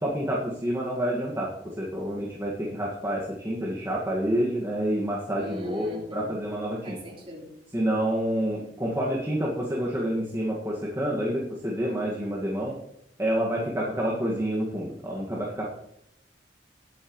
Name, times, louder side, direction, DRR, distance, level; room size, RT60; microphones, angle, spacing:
voice 1, 0.0-7.0 7.7-12.7 13.2-15.7, right 1 dB, 15° right, -5 dB, 1.8 m, -28 dB
voice 2, 5.4-6.3 6.8-7.5, left 1 dB, 30° right, -3 dB, 4.0 m, -39 dB
19.0 x 9.2 x 3.2 m, 0.75 s
head